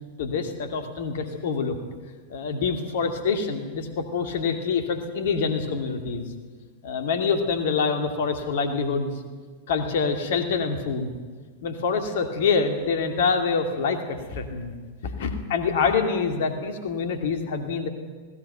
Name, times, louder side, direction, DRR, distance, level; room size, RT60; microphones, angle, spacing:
voice 1, 0.2-1.8 2.3-6.3 6.8-9.1 9.7-11.1 11.6-14.7 15.0-17.9, left 5 dB, 55° left, 7 dB, 2.5 m, -26 dB
20.0 x 17.5 x 9.1 m, 1.5 s
figure-of-eight pair, 90°, 0 cm